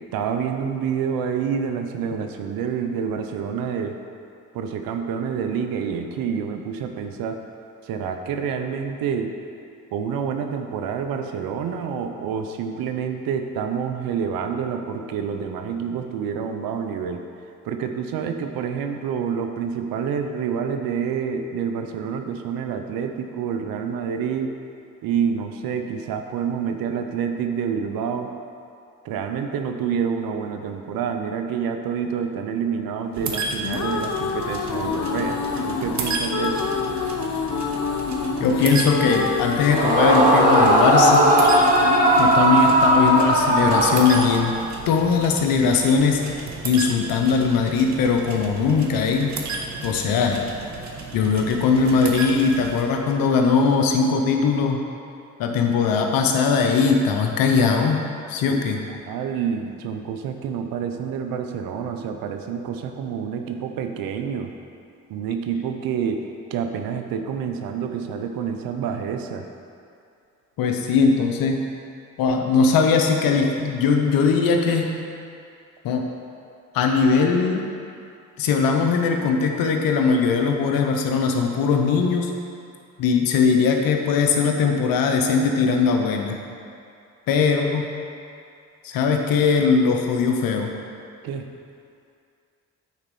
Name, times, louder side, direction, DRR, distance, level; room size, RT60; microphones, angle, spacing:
voice 1, 0.1-4.0 4.5-7.4 7.9-9.3 9.9-17.2 17.6-24.5 25.0-28.3 29.0-35.4 35.7-36.7 58.5-58.6 59.1-64.5 65.1-66.2 66.5-69.4 91.2-91.4, right 7 dB, 85° right, 6 dB, 0.7 m, -28 dB
sound 1, 33.1-52.8, right 4 dB, 55° right, 1.1 m, -34 dB
sound 2, 33.4-44.4, left 5 dB, 55° left, 0.8 m, -28 dB
voice 2, 38.4-41.3 42.2-44.6 44.9-49.3 49.8-50.5 51.1-54.8 55.4-58.8 70.6-71.6 72.2-75.0 75.8-76.1 76.7-77.7 78.4-82.3 83.0-86.4 87.3-87.9 88.8-90.7, left 5 dB, 85° left, 3 dB, 0.9 m, -20 dB
Yell / Screaming, 39.7-44.6, right 1 dB, 25° right, 1.8 m, -17 dB
9.3 x 4.2 x 5.4 m, 2.5 s
supercardioid pair, 55°, 34 cm